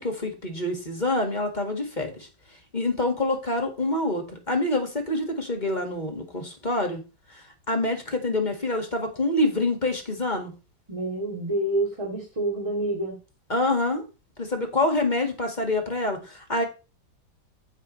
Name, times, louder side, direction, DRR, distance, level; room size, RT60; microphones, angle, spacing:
voice 1, 0.0-2.3 2.7-7.0 7.3-10.5 13.5-14.0 14.4-16.6, left 2 dB, 25° left, 4 dB, 1.8 m, -26 dB
voice 2, 10.9-13.2, right 1 dB, 15° right, -2 dB, 2.6 m, -27 dB
9.5 x 8.9 x 3.1 m, 0.30 s
omnidirectional pair, 2.1 m